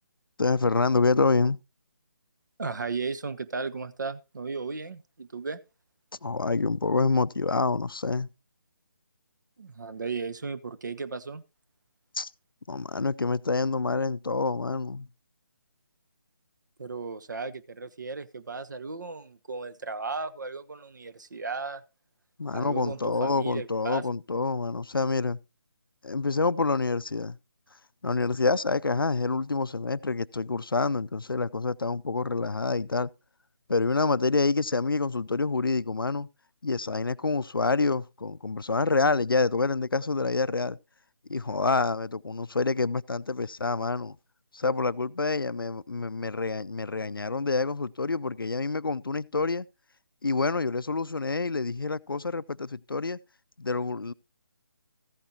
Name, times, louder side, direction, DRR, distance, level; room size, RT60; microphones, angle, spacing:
voice 1, 0.4-1.6 6.2-8.3 12.2-12.3 12.7-15.1 22.4-25.4 26.0-27.4 28.0-33.1 33.7-36.3 36.6-40.8 41.3-44.2 44.5-49.7 50.2-53.2 53.6-54.1, left 3 dB, 80° left, 0.5 m, -27 dB
voice 2, 2.6-5.6 9.6-11.4 16.8-21.8 22.5-24.0, right 4 dB, 55° right, 1.1 m, -35 dB
15.0 x 8.9 x 2.8 m
figure-of-eight pair, 150°, 12 cm